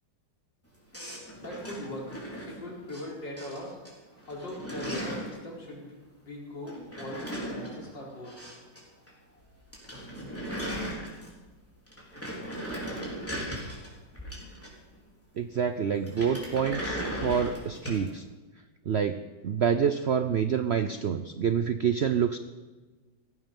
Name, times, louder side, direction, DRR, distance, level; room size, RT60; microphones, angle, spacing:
sound 1, 0.9-3.0 3.4-3.9 4.2-5.4 6.7-8.8 9.1-9.2 9.5-9.6 9.7-11.5 11.9-15.0 16.0-18.1, equal, 5° left, 3.5 m, -37 dB
voice 1, 1.4-3.8 4.3-8.3, left 1 dB, 85° left, -3 dB, 4.9 m, -40 dB
voice 2, 15.4-18.2 18.9-19.2 19.4-22.4, right 7 dB, 70° right, 10 dB, 0.6 m, -27 dB
16.5 x 14.5 x 5.3 m, 1.3 s
omnidirectional pair, 1.9 m